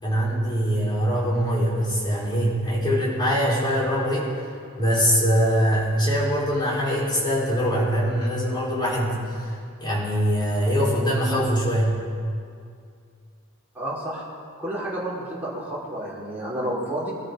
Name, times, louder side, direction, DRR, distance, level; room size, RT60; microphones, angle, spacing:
voice 1, 0.0-12.0, equal, 20° left, -6 dB, 4.7 m, -23 dB
voice 2, 13.7-14.2 14.6-17.1, right 1 dB, 10° right, -9 dB, 5.0 m, -30 dB
23.0 x 13.5 x 4.0 m, 2.3 s
head